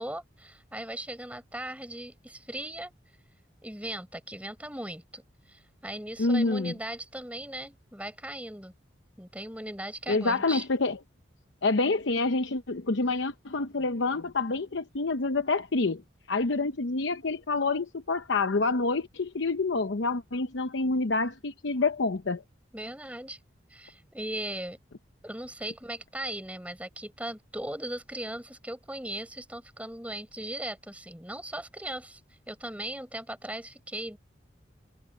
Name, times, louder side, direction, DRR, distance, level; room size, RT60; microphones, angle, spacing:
voice 1, 0.0-2.9 3.6-5.2 5.5-8.7 9.2-10.6 22.7-23.4 23.7-24.8 25.2-32.2 32.5-34.2, right 1 dB, 5° right, 6.4 m, -38 dB
voice 2, 6.2-6.7 10.1-11.0 11.6-16.0 16.3-22.4, left 3 dB, 75° left, 0.8 m, -27 dB
head